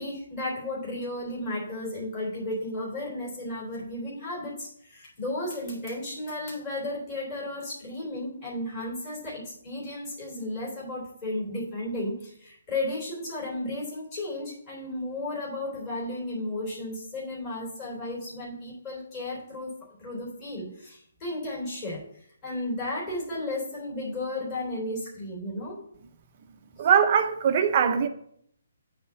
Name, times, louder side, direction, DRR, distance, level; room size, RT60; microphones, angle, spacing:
voice 1, 0.0-19.7 20.0-22.0 22.4-25.8, left 1 dB, 20° left, 3.3 m, -34 dB
voice 2, 26.8-28.1, right 7 dB, 30° right, 0.6 m, -21 dB
9.1 x 3.6 x 6.9 m
hypercardioid pair, 170°, 0 cm